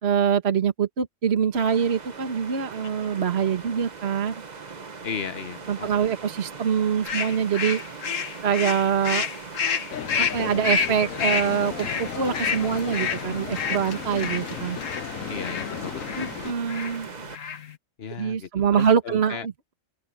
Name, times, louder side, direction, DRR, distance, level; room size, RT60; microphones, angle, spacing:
voice 1, 0.0-4.3 5.7-7.8 8.4-9.3 10.2-14.8 16.2-17.1 18.2-19.7, right 7 dB, 55° right, 1.6 m, -24 dB
sound 1, 1.5-17.4, right 4 dB, 35° right, 1.1 m, -40 dB
voice 2, 5.0-5.9 15.3-16.0 18.0-19.5, left 6 dB, 50° left, 1.3 m, -35 dB
sound 2, 7.0-15.0 15.4-15.7 16.1-16.3 16.7-17.0 17.3-17.7, left 6 dB, 70° left, 1.6 m, -29 dB
sound 3, 9.9-16.5, left 12 dB, 85° left, 1.1 m, -35 dB
open air
omnidirectional pair, 1.4 m